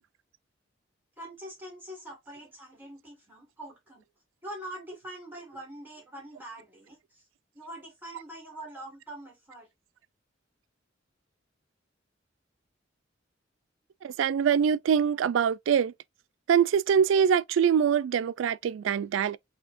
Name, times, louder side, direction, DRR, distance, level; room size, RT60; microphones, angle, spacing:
voice 1, 1.2-4.0 4.4-7.2 7.5-9.7, right 1 dB, 10° right, 1.7 m, -44 dB
voice 2, 14.0-15.9 16.5-19.4, right 7 dB, 80° right, 0.3 m, -24 dB
5.9 x 2.8 x 2.5 m
head